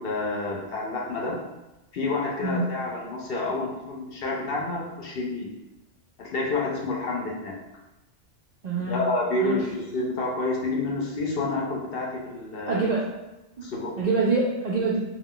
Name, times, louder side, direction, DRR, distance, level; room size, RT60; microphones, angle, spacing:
voice 1, 0.0-1.4 1.9-5.5 6.2-7.5 8.9-12.8 13.6-13.9, left 2 dB, 60° left, -3 dB, 0.7 m, -29 dB
voice 2, 8.6-9.1 9.4-9.6 12.7-13.2 13.6-13.7 14.0-15.0, right 3 dB, 75° right, -4 dB, 0.4 m, -25 dB
2.3 x 2.3 x 3.6 m, 0.98 s
omnidirectional pair, 1.3 m